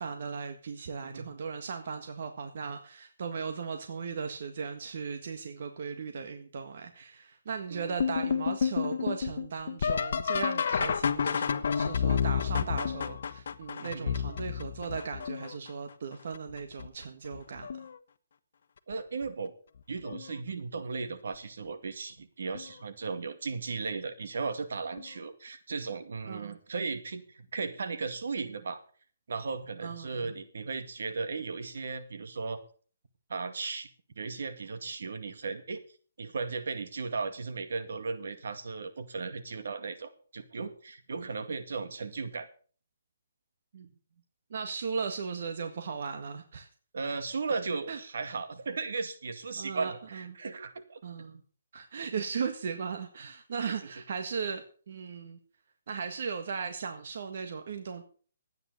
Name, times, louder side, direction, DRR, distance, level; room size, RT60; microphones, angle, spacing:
voice 1, 0.0-17.9 26.2-26.6 29.8-30.3 43.7-43.9 44.5-46.7 47.0-47.1 47.9-48.0 49.6-50.4 51.0-51.4 51.7-55.4 55.9-58.0, right 5 dB, 55° right, 5 dB, 1.7 m, -37 dB
sound 1, 8.0-15.7 16.3-16.9 17.3-18.0 19.2-19.3 20.1-20.4 22.5-22.7 25.0-25.1, left 6 dB, 60° left, 1.2 m, -30 dB
voice 2, 13.8-14.2 18.9-19.5 19.9-28.8 29.3-32.6 33.3-33.9 34.2-35.8 36.2-42.5 46.9-51.0 53.7-53.8, right 4 dB, 70° right, 8 dB, 2.1 m, -36 dB
13.0 x 9.4 x 6.8 m, 0.43 s
hypercardioid pair, 160°, 0 cm